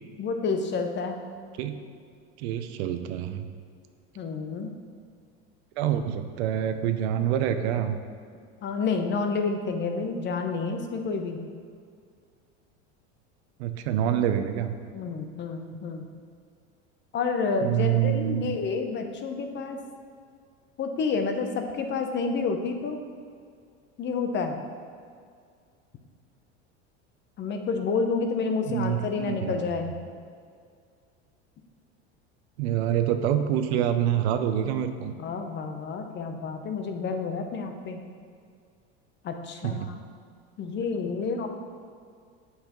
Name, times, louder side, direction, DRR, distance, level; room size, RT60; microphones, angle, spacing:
voice 1, 0.2-1.2 4.2-4.7 8.6-11.4 14.9-16.1 17.1-19.8 20.8-23.0 24.0-24.6 27.4-29.9 35.2-38.0 39.2-40.0 40.6-41.5, left 4 dB, 35° left, 5 dB, 0.7 m, -29 dB
voice 2, 2.4-3.4 5.8-8.0 13.6-14.7 17.6-18.6 28.7-29.6 32.6-35.1 39.6-39.9, right 10 dB, 75° right, 9 dB, 0.6 m, -26 dB
7.9 x 5.5 x 3.0 m, 2.2 s
supercardioid pair, 105°, 33 cm